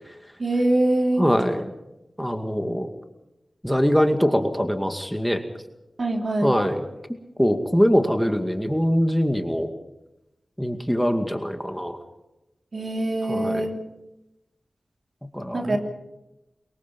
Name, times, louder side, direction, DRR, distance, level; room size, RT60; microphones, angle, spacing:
voice 1, 0.4-1.2 6.0-6.5 12.7-13.8 15.5-15.8, right 1 dB, 60° right, 3 dB, 3.3 m, -23 dB
voice 2, 1.2-1.7 2.2-2.9 3.6-5.4 6.4-6.8 7.4-9.7 10.6-12.0 13.3-13.7 15.3-15.8, equal, ahead, 5 dB, 2.2 m, -22 dB
23.5 x 22.5 x 5.5 m, 0.93 s
wide cardioid pair, 55°, 0 cm